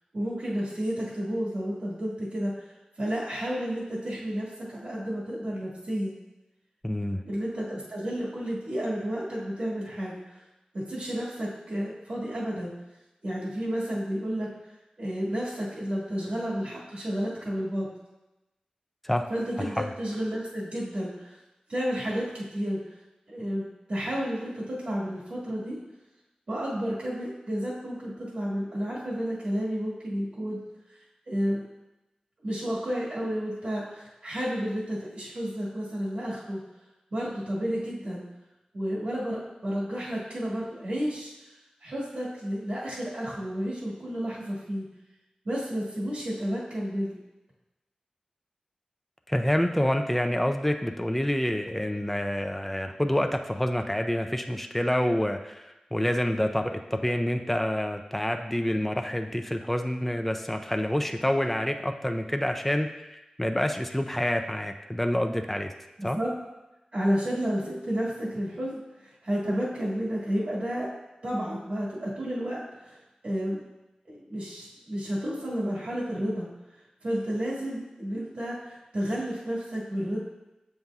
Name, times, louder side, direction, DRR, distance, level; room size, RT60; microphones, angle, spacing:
voice 1, 0.1-6.2 7.2-10.4 10.7-12.7 13.2-14.5 15.0-17.9 19.3-21.4 21.7-23.0 23.3-25.8 26.5-30.6 31.3-31.6 32.4-36.6 37.1-38.2 38.7-41.3 41.8-44.8 45.4-47.2 66.0-66.3 66.9-70.9 71.2-73.6 74.1-76.5 77.0-80.2, equal, 80° right, -7 dB, 1.7 m, -31 dB
voice 2, 6.8-7.2 19.0-19.2 19.6-19.8 49.3-65.7 66.0-66.2, left 1 dB, 5° left, 5 dB, 0.4 m, -27 dB
7.6 x 5.4 x 2.4 m, 0.98 s
wide cardioid pair, 70°, 2 cm